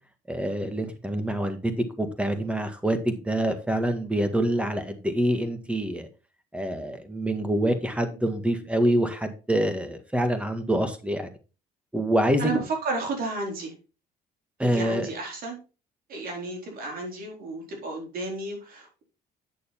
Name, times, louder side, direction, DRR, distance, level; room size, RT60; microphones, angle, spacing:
voice 1, 0.3-6.1 6.5-11.3 11.9-12.5 14.6-15.1, right 1 dB, 5° right, 1.7 m, -26 dB
voice 2, 12.4-13.7 14.6-15.6 16.1-19.0, right 3 dB, 60° right, 4.3 m, -32 dB
9.2 x 6.5 x 4.3 m
cardioid pair, 110°, 17 cm